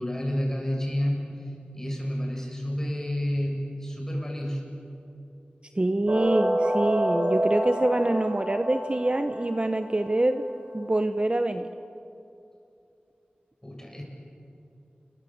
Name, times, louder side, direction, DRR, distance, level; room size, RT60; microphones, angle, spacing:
voice 1, 0.0-1.5 1.7-4.7 13.6-14.0, equal, 15° left, 0 dB, 7.6 m, -30 dB
voice 2, 5.7-10.5 10.7-11.7, right 1 dB, 30° right, 8 dB, 1.0 m, -25 dB
sound 1, 6.1-10.5, right 1 dB, 55° right, 6.0 m, -28 dB
30.0 x 22.0 x 8.0 m, 2.7 s
wide cardioid pair, 55°, 3 cm